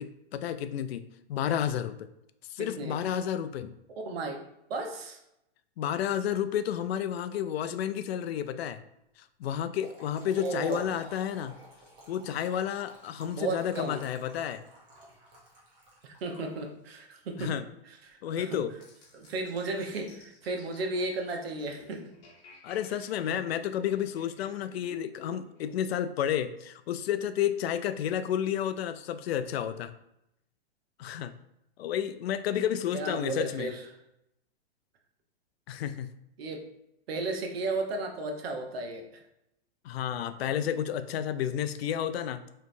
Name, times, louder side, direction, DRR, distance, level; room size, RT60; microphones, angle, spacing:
voice 1, 0.0-2.1 2.5-3.7 5.8-8.8 9.4-11.6 12.1-14.6 17.4-17.6 18.2-18.7 22.6-29.9 31.0-31.3 31.8-33.7 35.7-36.1 39.8-42.4, left 10 dB, 75° left, 11 dB, 0.5 m, -31 dB
voice 2, 2.6-3.0 4.0-4.4 4.7-5.2 10.4-10.9 13.3-14.0 16.0-17.5 18.0-18.6 19.1-22.1 23.3-23.4 32.9-33.8 36.4-36.7 37.1-39.0, right 3 dB, 70° right, 3 dB, 0.9 m, -34 dB
Trickle dribble / Fill (with liquid), 9.5-17.0, right 1 dB, 15° right, 0.7 m, -52 dB
sound 1, 18.8-25.7, left 2 dB, 40° left, 1.2 m, -54 dB
5.1 x 3.2 x 2.6 m, 0.82 s
supercardioid pair, 165°, 32 cm